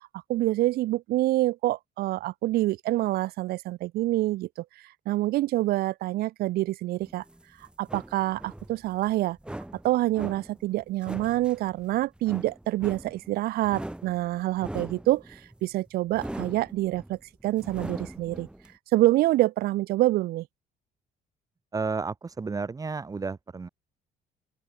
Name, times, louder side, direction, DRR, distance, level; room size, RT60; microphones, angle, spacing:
voice 1, 0.3-4.5 5.1-7.2 7.8-9.4 9.8-18.5 18.9-20.5, right 17 dB, 65° right, 0.4 m, -26 dB
sound 1, 7.0-18.7, right 1 dB, 5° right, 4.0 m, -41 dB
voice 2, 21.7-23.7, right 4 dB, 20° right, 1.1 m, -32 dB
open air
cardioid pair, 110°, 17 cm